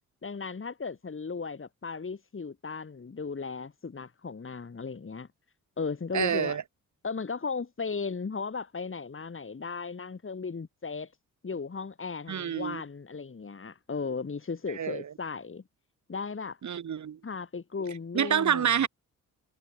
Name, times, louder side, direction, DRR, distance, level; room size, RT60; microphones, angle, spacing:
voice 1, 0.2-5.3 5.8-6.6 7.0-11.1 11.4-15.6 16.1-16.6 17.2-18.9, left 5 dB, 35° left, 5.2 m, -36 dB
voice 2, 6.1-6.6 12.3-12.8 14.7-15.1 16.6-17.2 18.1-18.9, right 8 dB, 55° right, 2.1 m, -27 dB
cardioid pair, 70°, 35 cm